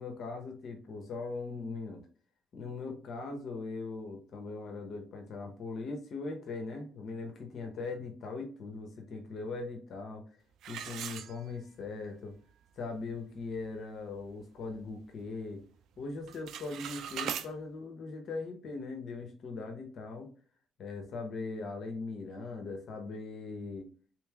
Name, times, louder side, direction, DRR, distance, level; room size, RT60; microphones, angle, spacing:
voice 1, 0.0-2.0 2.5-10.2 10.7-12.3 12.8-15.6 16.0-20.3 20.8-23.9, left 3 dB, 65° left, 3 dB, 0.8 m, -40 dB
sound 1, 10.6-11.9 12.3-12.4 13.0-13.1 13.5-13.8 14.2-15.3 15.6-16.0 16.2-17.5, right 9 dB, 80° right, 0.3 m, -40 dB
3.7 x 3.0 x 2.3 m, 0.41 s
cardioid pair, 90°, 0 cm